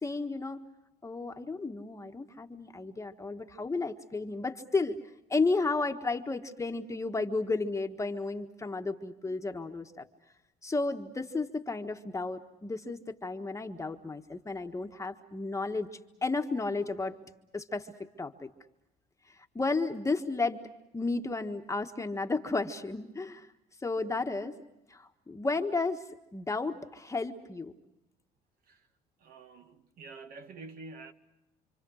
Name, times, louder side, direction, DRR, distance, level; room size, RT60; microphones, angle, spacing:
voice 1, 0.0-0.6 1.0-5.0 5.3-10.0 10.6-15.9 16.2-17.1 17.5-17.9 18.2-18.5 19.5-20.6 20.9-23.5 23.8-24.6 24.9-26.0 26.3-27.7, left 3 dB, 20° left, 1.5 m, -33 dB
voice 2, 29.2-31.1, right 3 dB, 60° right, 2.1 m, -47 dB
28.0 x 26.0 x 6.4 m
cardioid pair, 110°, 17 cm